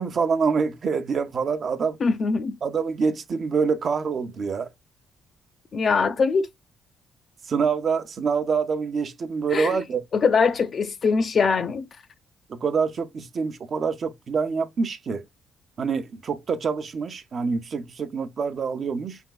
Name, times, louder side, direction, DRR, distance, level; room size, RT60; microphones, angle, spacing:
voice 1, 0.0-2.0 2.6-4.7 7.5-10.0 12.5-15.2 15.8-19.2, right 5 dB, 50° right, 0.7 m, -26 dB
voice 2, 2.0-2.6 5.7-6.5 9.5-9.8 10.1-11.9, left 5 dB, 50° left, 0.5 m, -22 dB
4.6 x 3.5 x 2.2 m
supercardioid pair, 70°, 0 cm